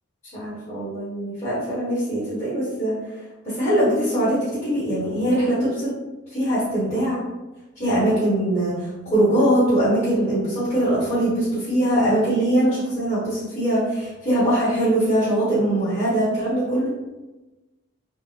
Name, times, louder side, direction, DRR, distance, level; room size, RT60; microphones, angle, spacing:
voice 1, 0.3-2.9 3.4-5.9 6.3-7.2 7.8-16.9, right 1 dB, 30° left, -12 dB, 1.3 m, -22 dB
3.4 x 2.1 x 3.3 m, 1.1 s
head